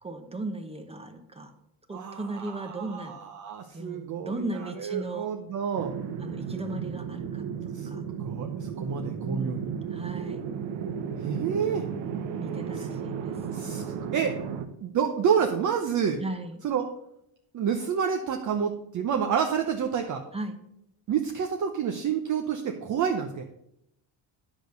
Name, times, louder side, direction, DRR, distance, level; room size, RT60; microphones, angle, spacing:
voice 1, 0.0-1.5 1.9-3.1 3.7-5.3 6.2-8.0 9.2-9.6 9.9-10.4 12.4-13.4 16.2-16.6 20.3-20.6, right 2 dB, 15° right, 6 dB, 0.8 m, -36 dB
voice 2, 1.9-5.9 7.7-7.9 8.2-9.7 11.2-11.8 12.8-12.9 13.5-14.3 14.8-16.2 16.6-16.8 17.5-20.2 21.1-23.4, right 7 dB, 40° right, 4 dB, 0.8 m, -29 dB
sound 1, 5.7-14.7, right 7 dB, 75° right, 1.1 m, -34 dB
10.0 x 5.1 x 6.6 m, 0.81 s
cardioid pair, 150°, 45 cm